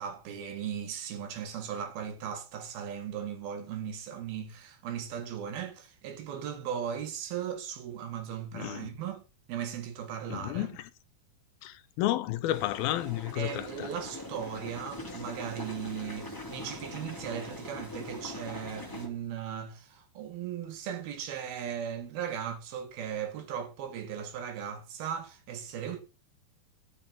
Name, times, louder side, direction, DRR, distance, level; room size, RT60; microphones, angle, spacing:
voice 1, 0.0-9.2 9.5-10.8 13.4-26.0, right 8 dB, 80° right, 3.8 m, -37 dB
voice 2, 8.5-8.9 10.3-10.9 11.6-13.9, left 15 dB, 90° left, 2.7 m, -32 dB
sound 1, 12.5-19.1, left 2 dB, 5° left, 2.1 m, -42 dB
12.5 x 7.0 x 5.3 m
omnidirectional pair, 4.2 m